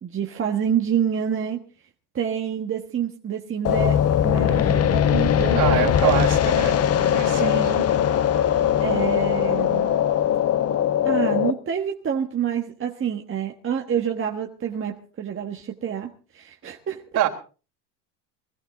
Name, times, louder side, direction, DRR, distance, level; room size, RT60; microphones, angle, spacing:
voice 1, 0.0-1.6 2.1-5.6 7.4-7.8 8.8-9.9 11.0-17.0, right 8 dB, 25° right, 1.4 m, -27 dB
sound 1, 3.6-11.5, left 9 dB, 30° left, 0.9 m, -20 dB
voice 2, 5.5-6.8 7.1-7.7 17.1-17.3, right 12 dB, 50° right, 3.8 m, -24 dB
20.5 x 14.0 x 3.9 m
supercardioid pair, 105°, 48 cm